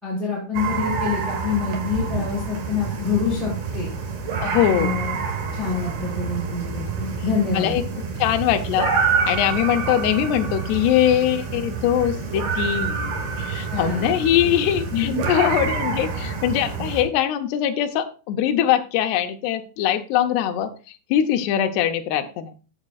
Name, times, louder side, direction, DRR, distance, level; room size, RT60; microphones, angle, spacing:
voice 1, 0.0-3.9 4.7-5.2 5.5-7.8 13.7-14.1 14.9-15.2, left 5 dB, ahead, -8 dB, 4.1 m, -26 dB
sound 1, 0.5-17.0, right 5 dB, 90° right, 1.6 m, -27 dB
voice 2, 4.4-5.0 7.5-7.8 8.2-8.9 9.3-20.7 21.1-22.5, left 10 dB, 80° left, 7 dB, 2.4 m, -22 dB
15.0 x 6.6 x 2.4 m, 0.35 s
omnidirectional pair, 5.7 m